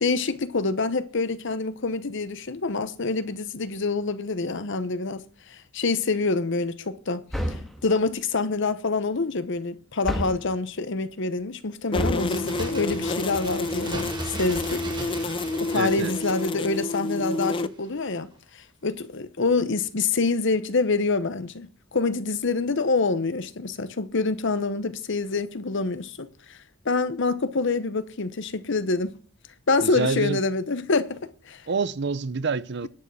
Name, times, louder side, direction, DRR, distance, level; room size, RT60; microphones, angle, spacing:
voice 1, 0.0-7.6 7.8-14.8 15.6-26.6 26.8-29.2 29.7-31.6, left 3 dB, 65° left, 0.9 m, -26 dB
sound 1, 7.3-7.8 10.0-10.5 11.9-12.3, equal, ahead, 1.8 m, -29 dB
sound 2, 11.9-17.7, left 2 dB, 25° left, 0.4 m, -29 dB
Bird, 12.0-17.6 17.9-18.0, right 2 dB, 20° right, 1.8 m, -38 dB
voice 2, 15.7-16.1 29.8-30.4 31.7-32.9, right 4 dB, 55° right, 0.6 m, -27 dB
11.0 x 6.3 x 7.1 m
head